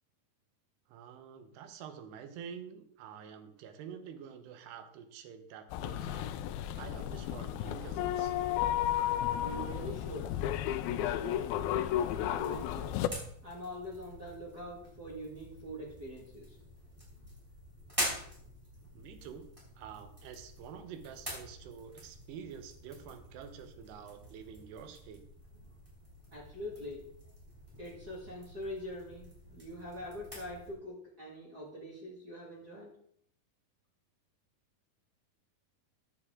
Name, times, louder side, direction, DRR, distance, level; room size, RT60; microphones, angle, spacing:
voice 1, 0.9-6.3 6.7-8.3 18.9-19.5 19.8-25.2, right 7 dB, 80° right, 8 dB, 3.0 m, -48 dB
sound 1, 5.7-13.1, left 12 dB, 80° left, 2.2 m, -33 dB
voice 2, 9.4-10.4 10.9-11.4 11.6-13.0 13.4-16.6 26.3-27.1 27.8-32.9, equal, 40° right, -3 dB, 1.4 m, -44 dB
sound 2, 12.0-30.7, equal, 5° right, 4.4 m, -46 dB
14.5 x 9.6 x 3.7 m, 0.67 s
omnidirectional pair, 4.8 m